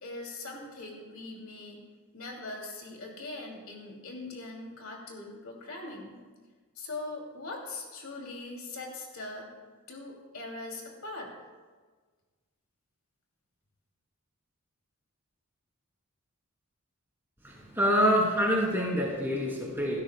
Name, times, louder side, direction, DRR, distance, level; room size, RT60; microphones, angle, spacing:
voice 1, 0.0-1.8 2.1-6.2 6.8-9.5 9.9-11.3, left 2 dB, 75° left, 0 dB, 2.6 m, -41 dB
voice 2, 17.4-20.0, equal, 10° right, -3 dB, 2.5 m, -26 dB
17.0 x 12.5 x 2.2 m, 1.4 s
head